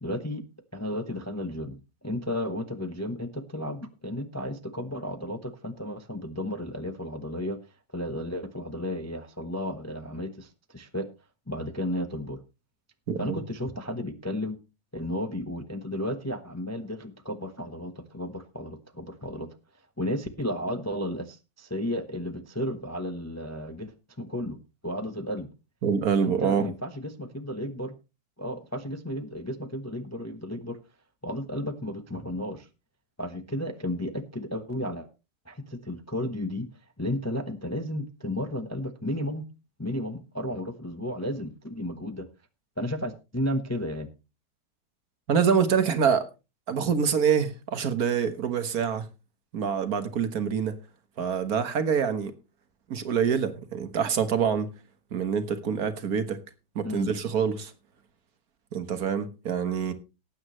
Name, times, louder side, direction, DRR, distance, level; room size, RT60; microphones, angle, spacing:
voice 1, 0.0-0.4 0.7-7.6 7.9-11.1 11.5-12.4 13.2-14.6 14.9-19.5 20.0-24.6 24.8-25.5 26.2-27.9 28.4-30.8 31.2-32.7 33.2-35.1 35.5-36.7 37.0-39.4 39.8-42.3 42.8-44.1 56.8-57.2, left 1 dB, 15° left, 0.6 m, -33 dB
voice 2, 13.1-13.4 25.8-26.7 45.3-46.2 46.7-49.1 49.5-50.8 51.2-52.3 52.9-54.7 55.1-56.4 56.7-57.7 58.7-59.9, right 7 dB, 60° right, 1.6 m, -26 dB
19.0 x 8.8 x 3.1 m
omnidirectional pair, 1.8 m